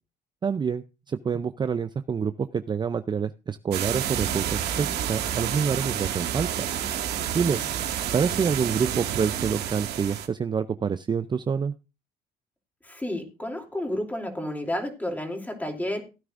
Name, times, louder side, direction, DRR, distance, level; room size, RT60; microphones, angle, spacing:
voice 1, 0.4-6.7 7.3-7.6 8.1-11.7, right 6 dB, 25° right, 11 dB, 0.5 m, -27 dB
sound 1, 3.7-10.3, right 10 dB, 75° right, 2.0 m, -29 dB
voice 2, 12.8-16.0, left 1 dB, 10° left, 4 dB, 2.9 m, -31 dB
16.5 x 9.4 x 2.5 m, 0.29 s
cardioid pair, 110°, 17 cm